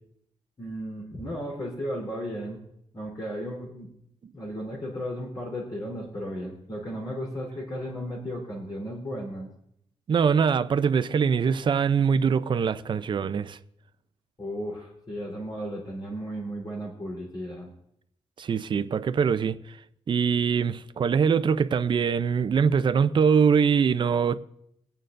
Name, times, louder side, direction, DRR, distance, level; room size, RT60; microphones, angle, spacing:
voice 1, 0.6-2.6 2.9-3.9 4.3-9.5 14.4-17.7, equal, 40° left, 3.7 m, -35 dB
voice 2, 10.1-13.6 18.4-19.8 20.1-24.4, right 6 dB, 45° right, 0.5 m, -23 dB
25.0 x 8.9 x 2.6 m
cardioid pair, 120°, 11 cm